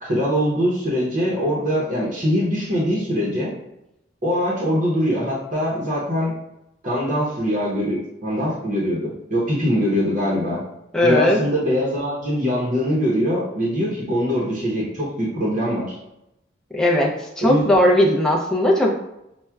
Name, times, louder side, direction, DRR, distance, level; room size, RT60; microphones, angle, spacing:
voice 1, 0.0-3.5 4.2-6.3 6.8-10.6 11.0-15.9 17.4-17.6, equal, 40° right, -6 dB, 0.7 m, -22 dB
voice 2, 10.9-11.4 16.7-19.0, left 1 dB, 5° left, -3 dB, 0.4 m, -18 dB
5.7 x 2.1 x 2.2 m, 0.86 s
head